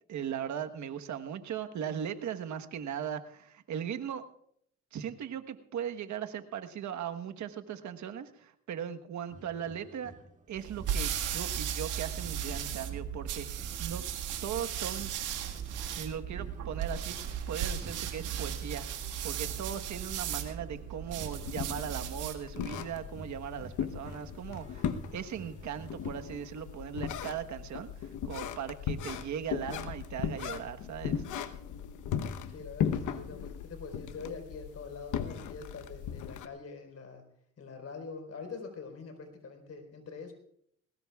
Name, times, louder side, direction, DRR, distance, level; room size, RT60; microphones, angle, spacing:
voice 1, 0.1-4.2 4.9-10.1 10.5-14.0 14.4-15.1 15.8-17.2 17.5-31.2, right 8 dB, 70° right, 7 dB, 1.3 m, -38 dB
sound 1, 9.3-22.2 22.7-26.1, right 2 dB, 25° right, 1.8 m, -53 dB
sound 2, 10.5-22.5, right 9 dB, 90° right, 1.8 m, -36 dB
sound 3, 21.4-36.5, left 8 dB, 80° left, 1.1 m, -37 dB
voice 2, 32.5-37.2 37.6-40.3, left 4 dB, 55° left, 5 dB, 4.5 m, -44 dB
21.5 x 18.5 x 2.4 m, 0.68 s
cardioid pair, 90°, 30 cm